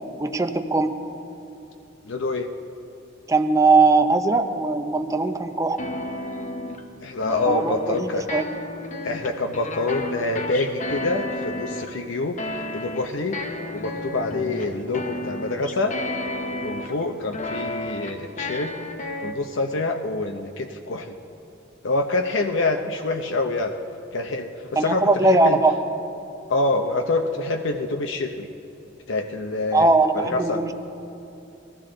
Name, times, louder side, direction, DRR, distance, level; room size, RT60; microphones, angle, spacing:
voice 1, 0.2-0.9 3.3-5.8 7.5-8.4 24.8-25.8 29.7-30.7, right 3 dB, 15° right, 7 dB, 0.5 m, -20 dB
voice 2, 2.0-2.5 7.0-8.3 9.0-12.4 12.7-13.4 13.7-15.9 16.5-18.7 19.2-21.1 21.8-23.7 24.1-25.6 26.5-28.5 29.1-29.9 30.1-30.6, left 2 dB, 70° left, 5 dB, 0.7 m, -26 dB
sound 1, 5.8-6.8 7.2-8.0 8.3-12.0 12.4-17.0 17.3-19.3, left 2 dB, 40° left, 0.8 m, -32 dB
19.5 x 14.5 x 3.8 m, 2.8 s
head